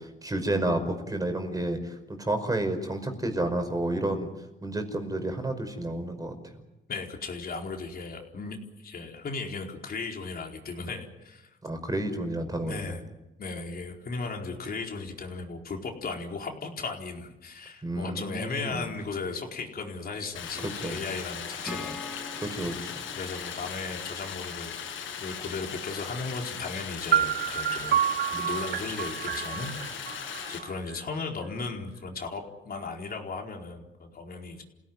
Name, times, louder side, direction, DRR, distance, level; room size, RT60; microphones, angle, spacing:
voice 1, 0.0-4.3 4.6-6.3 11.6-13.0 17.8-18.8 20.8-21.0 22.4-22.9, right 1 dB, 20° right, 6 dB, 5.3 m, -30 dB
voice 2, 6.9-11.6 12.6-13.0 13.4-22.0 23.1-24.7 25.2-27.9 28.3-29.7 30.5-34.6, left 4 dB, 50° left, 1 dB, 4.5 m, -36 dB
Stream, 20.4-30.6, left 7 dB, 85° left, 7.5 m, -38 dB
Acoustic guitar / Strum, 21.6-25.1, left 2 dB, ahead, 4.3 m, -44 dB
sound 1, 27.1-31.0, right 9 dB, 60° right, 0.9 m, -28 dB
28.5 x 17.0 x 9.6 m, 1.0 s
cardioid pair, 90°, 20 cm